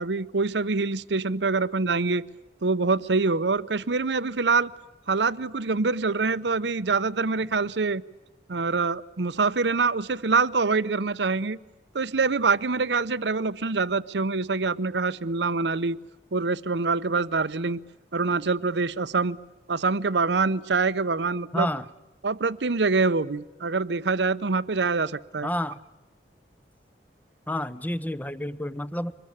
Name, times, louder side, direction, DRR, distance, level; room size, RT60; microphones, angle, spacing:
voice 1, 0.0-2.3 2.6-4.7 5.1-8.0 8.5-11.6 11.9-16.0 16.3-17.8 18.1-19.4 19.7-21.7 22.2-25.5, right 4 dB, 85° right, 0.8 m, -25 dB
voice 2, 21.5-21.8 25.4-25.8 27.5-29.1, left 1 dB, 10° left, 0.7 m, -29 dB
25.0 x 21.0 x 8.5 m
head